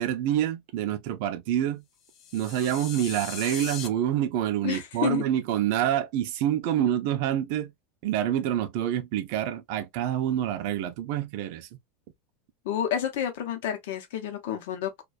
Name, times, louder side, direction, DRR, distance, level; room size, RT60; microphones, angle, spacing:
voice 1, 0.0-1.8 2.3-7.7 8.0-11.7, right 11 dB, 45° right, 0.4 m, -27 dB
sound 1, 2.1-3.9, left 8 dB, 25° left, 0.3 m, -39 dB
voice 2, 4.6-5.2 12.6-15.0, left 9 dB, 65° left, 0.6 m, -30 dB
2.3 x 2.2 x 2.4 m
supercardioid pair, 175°, 0 cm